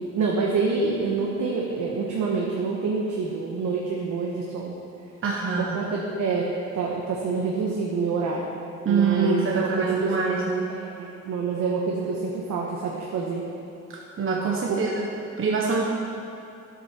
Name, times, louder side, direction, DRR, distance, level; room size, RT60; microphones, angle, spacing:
voice 1, 0.0-4.8 5.6-8.4 8.9-10.1 10.7-13.4 14.7-14.8, right 4 dB, 75° right, -2 dB, 1.4 m, -27 dB
voice 2, 5.2-5.8 8.8-10.7 13.9-15.1 15.4-15.9, right 5 dB, 45° right, -1 dB, 1.2 m, -24 dB
10.5 x 8.2 x 5.9 m, 2.6 s
cardioid pair, 90°, 30 cm